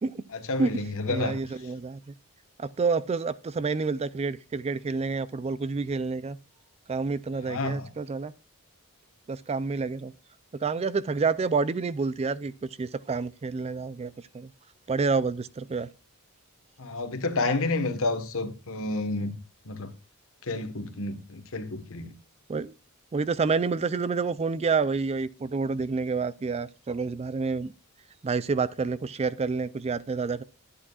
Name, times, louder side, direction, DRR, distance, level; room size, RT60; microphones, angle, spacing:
voice 1, 0.3-1.4 7.4-7.9 16.8-19.4 19.6-19.9 20.4-22.1, left 2 dB, 65° left, 1.3 m, -30 dB
voice 2, 1.1-2.1 2.6-6.4 6.9-8.3 9.3-10.1 10.6-12.5 12.8-14.5 14.9-15.9 22.5-22.7 23.1-27.7 28.2-30.4, right 4 dB, 30° right, 0.4 m, -28 dB
11.0 x 8.6 x 2.4 m
head